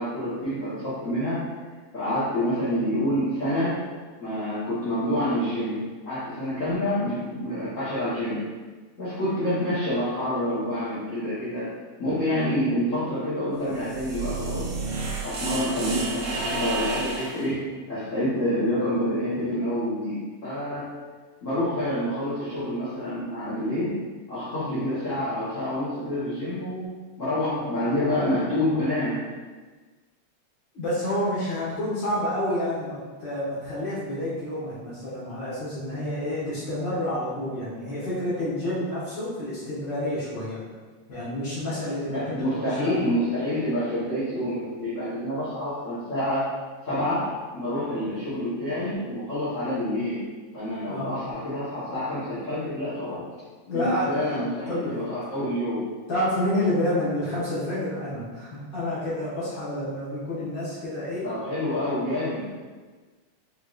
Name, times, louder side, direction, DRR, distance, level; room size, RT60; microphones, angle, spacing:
voice 1, 0.0-1.4 1.9-3.8 4.2-8.4 9.0-11.7 12.0-14.7 15.2-17.6 17.9-20.9 21.4-24.0 24.3-26.9 27.2-29.2 42.1-46.5 46.8-50.2 50.5-53.2 53.7-55.9 61.2-62.4, left 1 dB, 75° left, -12 dB, 0.7 m, -27 dB
sound 1, 13.6-17.5, right 3 dB, 80° right, 2.3 m, -31 dB
voice 2, 30.7-40.6 41.1-43.0 50.9-51.2 53.6-54.9 56.1-61.3, left 1 dB, 50° left, -10 dB, 1.5 m, -29 dB
6.3 x 3.1 x 2.4 m, 1.4 s
omnidirectional pair, 3.3 m